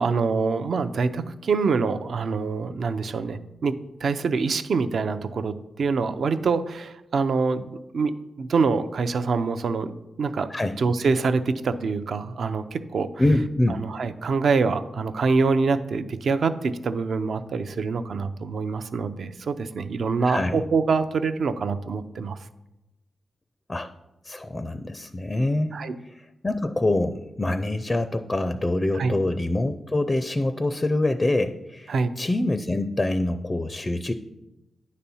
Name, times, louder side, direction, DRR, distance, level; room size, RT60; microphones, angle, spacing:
voice 1, 0.0-8.1 8.4-9.9 10.2-10.5 10.8-13.1 13.8-22.4 25.7-25.9 29.0-29.1 31.9-32.1, right 4 dB, 65° right, 10 dB, 0.5 m, -25 dB
voice 2, 13.2-13.8 20.2-20.6 23.7-23.9 24.2-25.8 26.4-34.1, left 2 dB, 20° left, 9 dB, 0.4 m, -25 dB
9.9 x 4.2 x 6.9 m, 0.96 s
wide cardioid pair, 105°, 0 cm